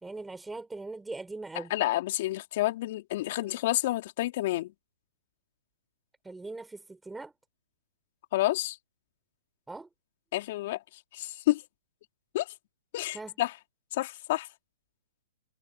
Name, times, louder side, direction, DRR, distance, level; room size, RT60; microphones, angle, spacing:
voice 1, 0.0-1.7 3.4-3.5 6.2-7.3 9.7-9.9 13.1-13.3, right 3 dB, 5° right, 3.6 m, -40 dB
voice 2, 1.6-4.7 8.3-8.8 10.3-10.8 11.1-11.6 12.3-12.5 12.9-13.5 13.9-14.5, left 16 dB, 50° left, 3.6 m, -29 dB
hypercardioid pair, 140°, 0 cm